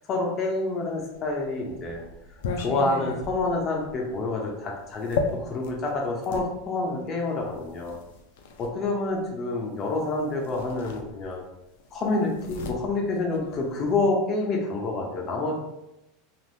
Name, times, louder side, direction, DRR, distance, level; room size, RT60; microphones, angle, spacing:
voice 1, 0.1-2.0 2.6-7.9 8.6-11.4 11.9-15.6, left 2 dB, 30° left, 0 dB, 0.5 m, -28 dB
sound 1, 1.2-6.5 7.4-8.7 10.0-10.1 10.4-11.5 11.8-14.0, left 4 dB, 80° left, 0.4 m, -35 dB
3.3 x 2.6 x 2.5 m, 0.88 s
supercardioid pair, 160°, 0 cm